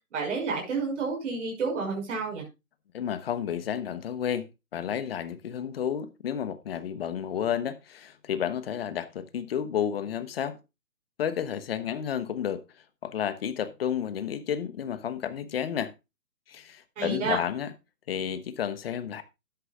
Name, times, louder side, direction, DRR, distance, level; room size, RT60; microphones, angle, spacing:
voice 1, 0.1-2.4 17.0-17.4, right 4 dB, 50° right, 5.5 m, -30 dB
voice 2, 2.9-10.6 11.2-12.6 13.0-15.9 16.5-17.7 18.1-19.2, left 9 dB, 40° left, 1.1 m, -31 dB
12.5 x 10.5 x 2.4 m
hypercardioid pair, 150°, 45 cm